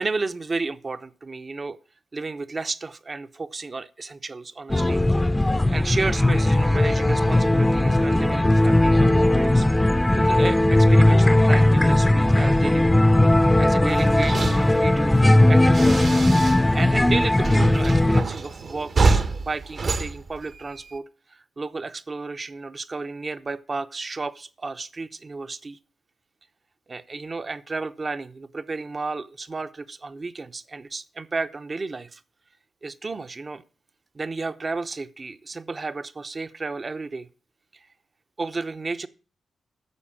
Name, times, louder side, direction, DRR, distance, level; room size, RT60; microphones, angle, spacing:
voice 1, 0.0-1.8 2.1-5.0 5.7-9.8 10.2-12.9 13.6-15.2 15.5-16.2 16.7-21.0 21.3-25.8 26.9-32.2 32.8-33.6 34.1-37.3 37.7-37.9 38.4-39.1, right 3 dB, 40° right, 0.8 m, -32 dB
sound 1, 4.7-18.2, left 1 dB, 15° left, 0.7 m, -18 dB
sound 2, 13.9-16.8 17.1-21.0, right 3 dB, 55° right, 1.2 m, -27 dB
9.8 x 6.7 x 7.3 m
cardioid pair, 70°, 0 cm